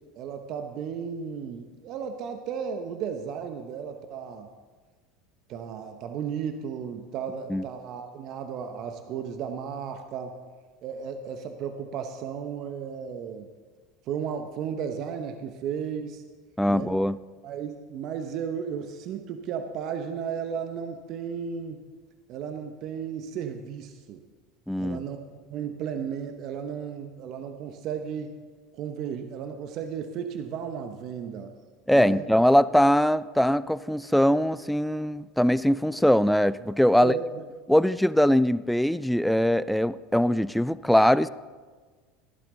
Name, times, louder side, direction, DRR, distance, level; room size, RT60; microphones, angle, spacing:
voice 1, 0.2-4.5 5.5-10.4 10.8-13.5 14.1-16.2 16.7-16.9 17.4-21.8 22.3-24.2 24.8-28.4 28.7-31.5 31.9-32.2 36.9-37.4, right 7 dB, 55° right, 7 dB, 0.9 m, -34 dB
voice 2, 16.6-17.2 24.7-25.0 31.9-37.1 37.7-41.3, equal, ahead, 16 dB, 0.4 m, -22 dB
14.5 x 11.5 x 3.9 m, 1.4 s
hypercardioid pair, 80°, 0 cm